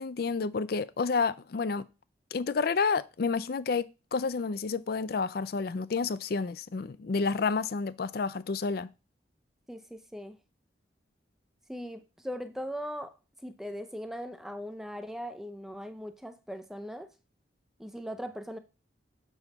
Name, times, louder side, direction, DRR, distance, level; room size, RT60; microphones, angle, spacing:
voice 1, 0.0-1.8 2.3-8.9, left 4 dB, 55° left, 0.4 m, -30 dB
voice 2, 9.7-10.4 11.7-13.2 13.4-17.1 17.8-18.6, equal, ahead, 0.5 m, -39 dB
7.0 x 5.6 x 4.0 m
head